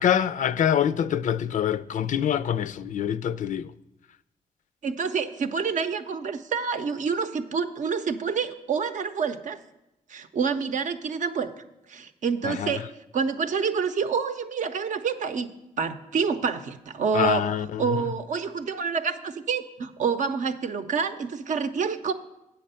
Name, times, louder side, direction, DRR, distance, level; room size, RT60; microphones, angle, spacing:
voice 1, 0.0-3.7 12.4-12.8 17.1-18.0, left 9 dB, 65° left, 0.4 m, -25 dB
voice 2, 4.8-9.6 10.1-11.5 11.9-12.9 13.1-15.5 15.8-17.4 17.8-22.1, right 6 dB, 60° right, 0.7 m, -27 dB
8.6 x 6.8 x 5.6 m
cardioid pair, 95°, 14 cm